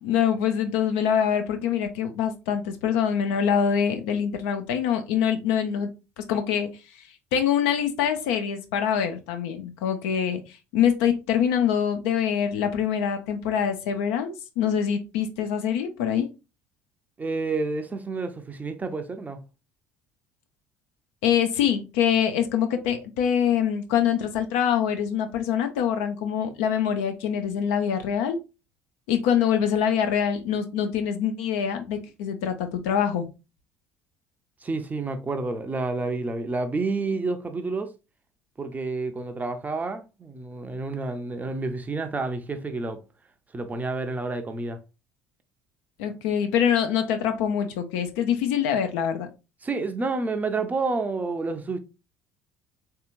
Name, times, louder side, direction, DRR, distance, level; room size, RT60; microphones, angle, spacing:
voice 1, 0.0-5.9 6.2-6.7 7.3-16.3 21.2-28.4 29.1-33.2 46.0-49.3, left 8 dB, 65° left, 0.5 m, -24 dB
voice 2, 17.2-19.4 34.6-37.9 38.6-43.0 43.5-44.8 49.6-51.8, right 3 dB, 20° right, 0.5 m, -29 dB
3.5 x 2.8 x 2.4 m
figure-of-eight pair, 55°, 8 cm